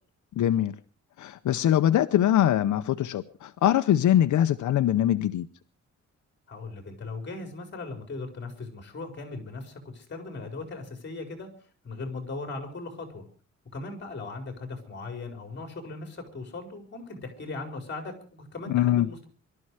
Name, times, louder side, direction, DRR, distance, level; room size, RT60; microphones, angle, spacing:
voice 1, 0.4-0.8 1.2-5.5 18.7-19.1, left 11 dB, 90° left, 9 dB, 0.8 m, -23 dB
voice 2, 6.5-11.5 11.8-13.2 13.7-19.3, left 3 dB, 40° left, 5 dB, 4.8 m, -38 dB
22.5 x 13.0 x 4.9 m, 0.40 s
wide cardioid pair, 155°, 29 cm